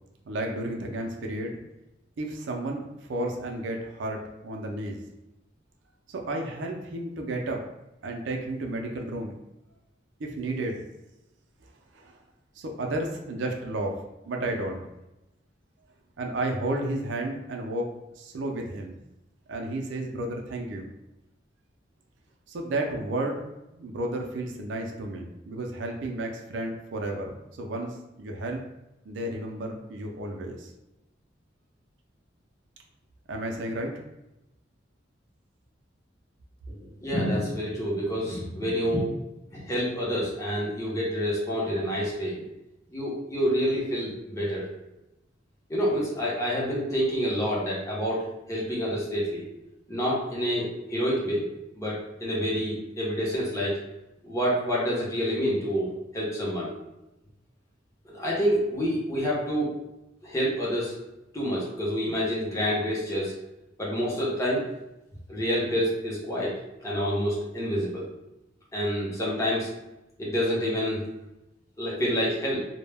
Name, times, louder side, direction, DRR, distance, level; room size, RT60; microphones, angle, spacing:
voice 1, 0.3-1.6 2.2-5.0 6.1-7.7 8.0-9.3 10.2-10.8 11.6-12.2 12.6-14.8 16.2-17.9 18.2-18.9 19.5-20.9 22.5-23.4 23.7-28.6 29.0-30.7 33.3-34.0, right 1 dB, 75° right, 2 dB, 0.4 m, -32 dB
voice 2, 36.7-39.1 39.5-42.4 42.9-44.6 45.7-49.5 49.9-51.4 51.7-53.8 54.2-56.7 58.0-59.7 60.2-61.0 61.3-63.4 63.8-64.7 65.3-68.1 68.7-69.7 70.2-71.0 71.8-72.6, equal, 15° left, -5 dB, 0.7 m, -28 dB
2.1 x 2.1 x 3.3 m, 0.92 s
head